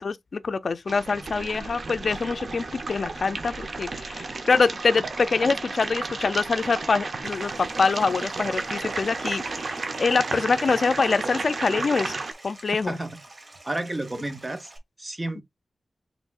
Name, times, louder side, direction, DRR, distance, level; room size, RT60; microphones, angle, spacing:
voice 1, 0.0-12.1 12.4-13.0 15.4-15.5, left 4 dB, 60° left, 0.5 m, -25 dB
sound 1, 0.9-12.3, right 3 dB, 60° right, 0.8 m, -33 dB
Stream, 7.2-14.8, right 2 dB, 40° right, 1.6 m, -48 dB
voice 2, 12.9-13.2 13.6-14.7 15.0-15.4, right 2 dB, 25° right, 1.0 m, -31 dB
5.9 x 3.6 x 2.5 m
wide cardioid pair, 90°, 0 cm